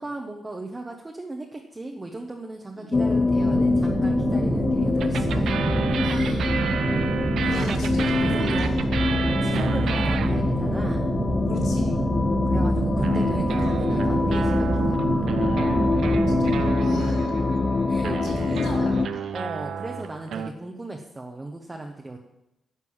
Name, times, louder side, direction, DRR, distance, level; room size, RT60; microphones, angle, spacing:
voice 1, 0.0-5.5 7.4-9.1 9.4-11.1 12.5-15.3 17.9-18.2 18.5-18.7 19.3-22.2, right 2 dB, 15° right, 1 dB, 1.0 m, -37 dB
sound 1, 2.9-19.1, left 3 dB, 25° left, 0.5 m, -24 dB
sound 2, 3.4-16.7, right 5 dB, 40° right, 0.3 m, -28 dB
sound 3, 5.0-10.7 13.0-20.5, right 7 dB, 70° right, 0.8 m, -32 dB
voice 2, 6.0-6.5 7.5-8.8 11.5-11.9 16.4-16.5 16.8-17.5 18.2-19.2, left 2 dB, 75° left, -4 dB, 4.4 m, -36 dB
11.0 x 6.8 x 8.7 m, 0.89 s
wide cardioid pair, 145°, 0 cm